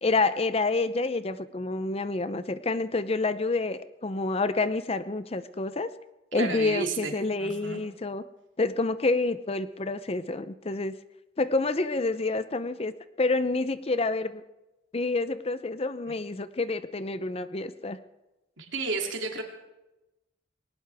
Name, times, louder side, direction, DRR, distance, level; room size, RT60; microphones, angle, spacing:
voice 1, 0.0-5.9 6.3-8.2 8.6-11.0 11.4-14.4 14.9-18.0, left 3 dB, 30° left, 13 dB, 0.6 m, -28 dB
voice 2, 6.3-7.1 7.4-7.8 18.6-19.4, right 3 dB, 75° right, 2 dB, 2.8 m, -32 dB
19.5 x 18.5 x 3.5 m, 1.0 s
head